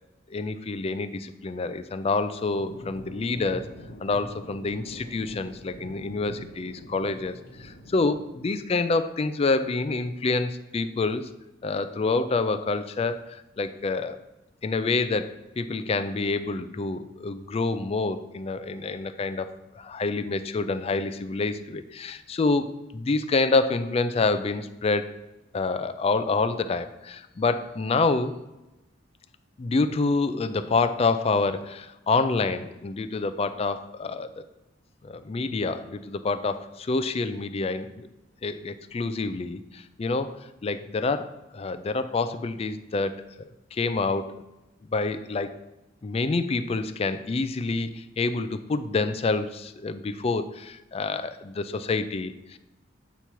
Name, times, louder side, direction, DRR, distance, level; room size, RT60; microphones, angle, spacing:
voice 1, 0.3-3.7 4.0-11.3 11.6-14.2 14.6-25.1 25.5-28.3 29.6-34.4 35.0-38.1 38.4-44.4 44.9-45.6 46.0-52.6, left 3 dB, 30° left, 11 dB, 0.3 m, -27 dB
sound 1, 2.5-8.3, equal, 55° left, 1.1 m, -44 dB
8.3 x 3.0 x 5.6 m, 1.0 s
head